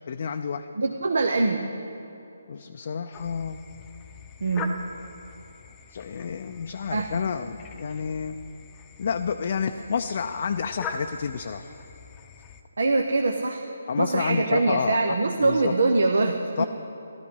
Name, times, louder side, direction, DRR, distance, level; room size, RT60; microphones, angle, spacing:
voice 1, 0.1-0.7 2.5-3.6 5.9-8.4 9.0-11.7 13.9-15.7 16.6-16.7, left 6 dB, 50° left, 6 dB, 0.5 m, -29 dB
voice 2, 0.7-1.6 4.4-4.7 6.9-7.1 12.8-13.6 14.0-16.7, right 3 dB, 70° right, 4 dB, 0.9 m, -23 dB
sound 1, 3.1-12.6, left 4 dB, 20° left, 0.8 m, -42 dB
14.0 x 12.5 x 5.5 m, 2.9 s
figure-of-eight pair, 150°, 0 cm